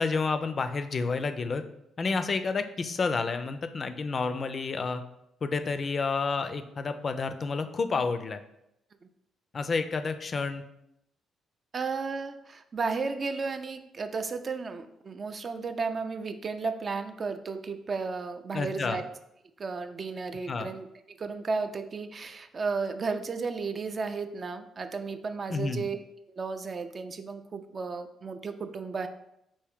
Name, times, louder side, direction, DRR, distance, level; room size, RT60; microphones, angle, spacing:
voice 1, 0.0-1.6 2.0-5.0 5.4-8.4 9.5-10.6 18.5-19.0 20.5-20.7 25.5-25.9, left 4 dB, 45° left, 9 dB, 0.3 m, -30 dB
voice 2, 11.7-19.0 19.6-20.9 21.2-26.0 26.4-29.1, right 4 dB, 45° right, 8 dB, 0.3 m, -33 dB
3.5 x 2.6 x 3.5 m, 0.81 s
supercardioid pair, 60°, 0 cm